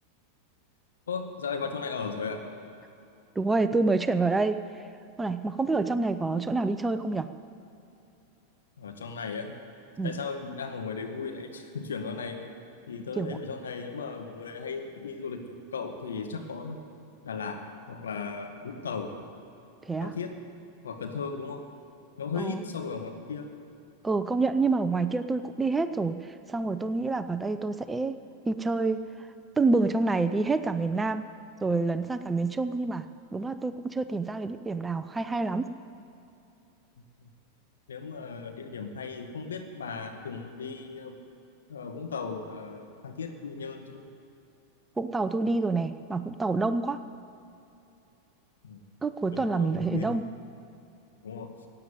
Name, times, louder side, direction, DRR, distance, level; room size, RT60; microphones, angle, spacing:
voice 1, 1.1-2.4 8.8-9.5 10.0-12.4 12.9-16.8 17.2-17.6 17.9-19.1 20.0-20.3 20.8-21.6 22.2-23.5 37.2-37.3 37.9-41.2 41.7-44.0 48.6-48.8 49.3-50.1 51.2-51.5, left 5 dB, 75° left, 4 dB, 1.8 m, -36 dB
voice 2, 3.4-4.8 5.2-7.3 10.0-10.2 13.2-13.4 19.8-20.1 22.4-22.6 24.0-28.2 28.4-29.0 29.6-31.2 31.6-33.1 33.3-35.7 45.0-47.0 49.0-50.2, right 3 dB, 15° right, 11 dB, 0.7 m, -27 dB
16.0 x 9.1 x 9.2 m, 2.8 s
figure-of-eight pair, 90°, 0 cm